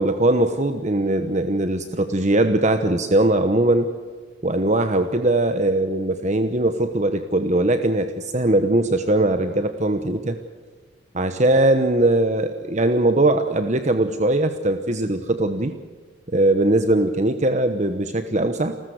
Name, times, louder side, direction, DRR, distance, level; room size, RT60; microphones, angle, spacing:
voice 1, 0.0-3.9 4.4-10.4 11.1-15.7 16.3-18.8, right 1 dB, 35° right, 8 dB, 1.0 m, -20 dB
29.0 x 14.0 x 8.0 m, 1.5 s
head